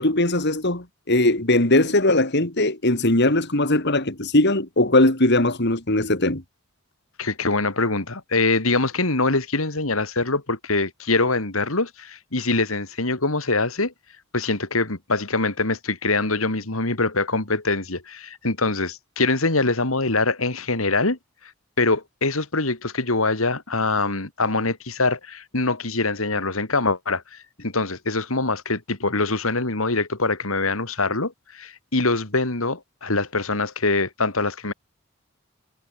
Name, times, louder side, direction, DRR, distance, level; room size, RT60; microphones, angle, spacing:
voice 1, 0.0-6.4, left 1 dB, 55° left, 3.6 m, -20 dB
voice 2, 7.2-13.9 14.3-21.2 21.8-34.7, left 3 dB, 80° left, 3.2 m, -24 dB
head